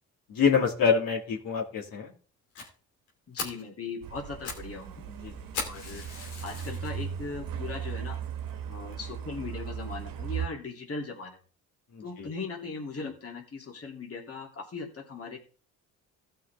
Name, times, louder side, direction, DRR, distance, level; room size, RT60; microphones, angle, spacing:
voice 1, 0.3-2.1 5.2-5.3 11.9-12.3, left 6 dB, 60° left, -3 dB, 2.8 m, -26 dB
Fire, 2.5-2.7 3.1-3.2 3.4-3.7 4.2-4.7 4.9-5.0 5.5-6.9 7.5-7.6 8.1-8.2 8.5-8.6 8.9-9.0, left 4 dB, 85° left, 2.7 m, -37 dB
voice 2, 3.3-5.0 5.7-8.2 8.7-11.4 12.0-15.4, left 4 dB, 35° left, 0 dB, 2.9 m, -39 dB
Truck, 4.0-10.5, right 8 dB, 60° right, 1.4 m, -37 dB
16.0 x 5.8 x 3.5 m, 0.39 s
hypercardioid pair, 60°, 38 cm